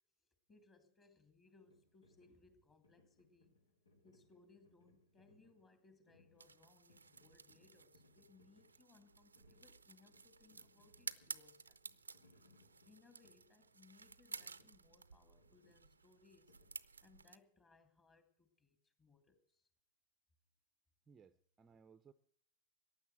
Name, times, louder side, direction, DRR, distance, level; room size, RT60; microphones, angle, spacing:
voice 1, 0.5-3.6 4.0-11.8 12.8-16.5 17.0-19.6, left 4 dB, 20° left, 3.0 m, -68 dB
sound 1, 1.6-17.4, left 2 dB, 80° left, 3.3 m, -72 dB
sound 2, 6.4-17.4, right 4 dB, 85° right, 0.6 m, -54 dB
voice 2, 21.1-22.1, right 6 dB, 20° right, 0.7 m, -63 dB
15.5 x 10.0 x 7.9 m
figure-of-eight pair, 95°, 0 cm